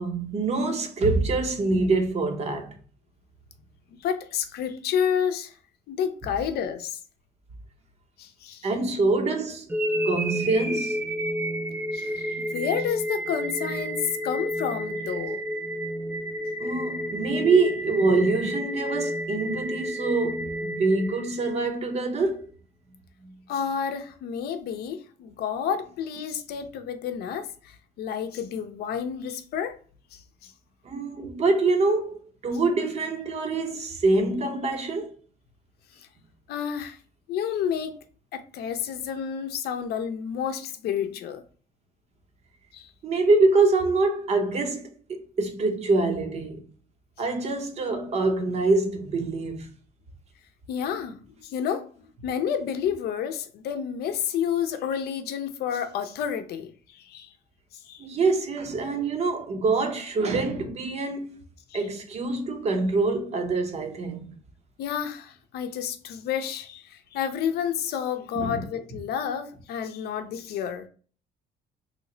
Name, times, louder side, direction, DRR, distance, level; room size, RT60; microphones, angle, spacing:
voice 1, 0.0-2.8 8.6-9.7 10.0-11.0 16.6-22.5 23.2-23.3 30.8-35.2 43.0-46.7 47.2-49.7 58.0-61.4 61.7-64.4 68.3-68.6, right 3 dB, 40° right, 0.8 m, -25 dB
voice 2, 4.0-5.6 5.9-7.0 8.2-8.7 11.9-15.4 23.5-29.8 30.1-30.5 35.9-36.1 36.5-37.0 37.3-38.0 38.3-41.4 42.7-42.9 50.7-51.9 52.2-57.3 57.8-58.1 61.7-61.8 64.8-70.9, left 8 dB, 70° left, 0.6 m, -30 dB
sound 1, 9.7-21.7, equal, 10° right, 0.4 m, -30 dB
3.1 x 2.1 x 3.7 m
cardioid pair, 110°, 17 cm